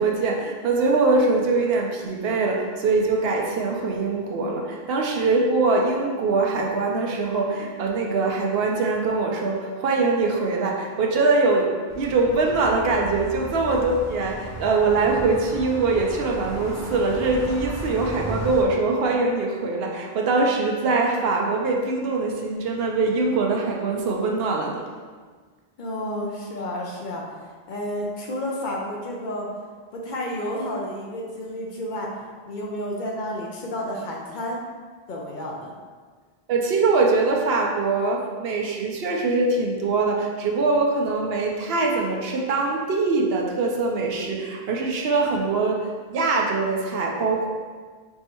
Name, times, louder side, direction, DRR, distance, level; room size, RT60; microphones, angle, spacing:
voice 1, 0.0-24.8 36.5-47.5, right 3 dB, 75° right, 0 dB, 0.8 m, -23 dB
sound 1, 11.9-18.6, equal, 25° left, 0.4 m, -35 dB
voice 2, 25.8-27.2 27.7-29.5 29.9-32.1 32.4-34.6 35.1-35.7, left 1 dB, 55° left, -2 dB, 0.7 m, -31 dB
4.4 x 3.2 x 2.9 m, 1.5 s
omnidirectional pair, 1.1 m